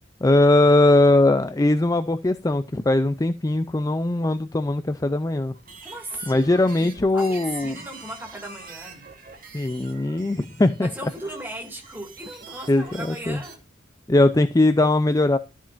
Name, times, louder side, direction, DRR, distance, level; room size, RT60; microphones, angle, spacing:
voice 1, 0.2-5.5 6.3-7.8 9.5-10.9 12.7-13.4 14.1-15.4, left 2 dB, 15° left, 0.4 m, -20 dB
sound 1, 5.5-13.6, right 5 dB, 45° right, 2.3 m, -44 dB
voice 2, 5.8-6.5 6.8-9.1 10.8-13.6, right 1 dB, 10° right, 2.4 m, -37 dB
13.0 x 7.2 x 2.5 m
head